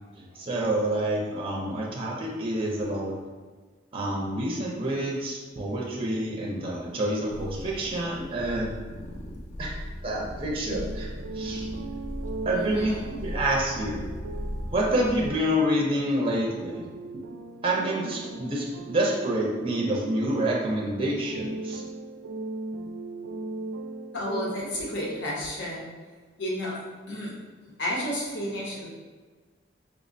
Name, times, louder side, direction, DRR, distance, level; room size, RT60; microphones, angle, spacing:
voice 1, 0.2-3.1 3.9-8.8 9.6-9.7 10.0-11.1 11.3-11.7 12.4-14.0 14.7-16.8 17.6-21.8, right 1 dB, 30° right, -2 dB, 0.5 m, -28 dB
sound 1, 7.3-15.3, left 1 dB, 40° left, 0.3 m, -37 dB
sound 2, 10.6-24.5, right 3 dB, 90° right, 0.3 m, -38 dB
voice 2, 12.5-13.2 24.1-25.9 26.4-26.8 27.1-27.3 27.8-28.9, left 1 dB, 65° left, -4 dB, 0.8 m, -32 dB
4.8 x 2.1 x 2.5 m, 1.4 s
head